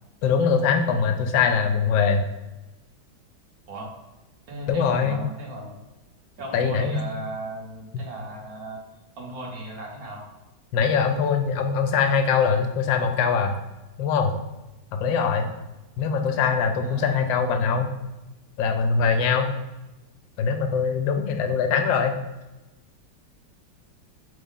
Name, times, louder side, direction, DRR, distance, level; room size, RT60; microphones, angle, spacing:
voice 1, 0.2-2.3 4.7-5.2 6.5-7.0 7.9-8.0 10.7-13.5 14.0-14.3 15.0-15.5 16.0-17.9 18.6-19.5 20.4-22.1, left 6 dB, 85° left, 5 dB, 1.3 m, -22 dB
voice 2, 4.5-5.8 6.4-8.8 9.2-10.2 16.8-17.3, right 1 dB, 60° right, -1 dB, 1.3 m, -36 dB
4.0 x 3.6 x 3.7 m, 1.0 s
omnidirectional pair, 2.0 m